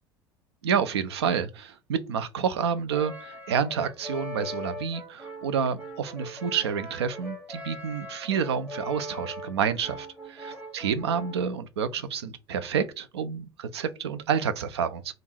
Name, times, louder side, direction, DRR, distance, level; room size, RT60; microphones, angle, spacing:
voice 1, 0.6-15.1, right 7 dB, 75° right, 0.5 m, -29 dB
Brass instrument, 2.9-11.5, equal, 10° right, 1.1 m, -40 dB
3.5 x 2.5 x 4.2 m
figure-of-eight pair, 70°, 14 cm